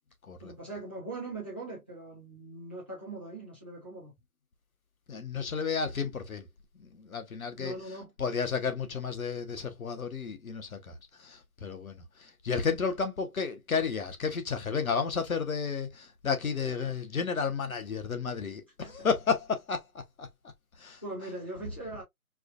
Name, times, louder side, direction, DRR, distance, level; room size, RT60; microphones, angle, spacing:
voice 1, 0.4-4.1 7.6-8.1 18.8-18.9 21.0-22.0, right 2 dB, 10° left, 0.7 m, -41 dB
voice 2, 5.1-6.5 6.8-20.3 20.8-21.0, left 5 dB, 70° left, 1.0 m, -32 dB
4.7 x 2.3 x 2.5 m
figure-of-eight pair, 155°, 44 cm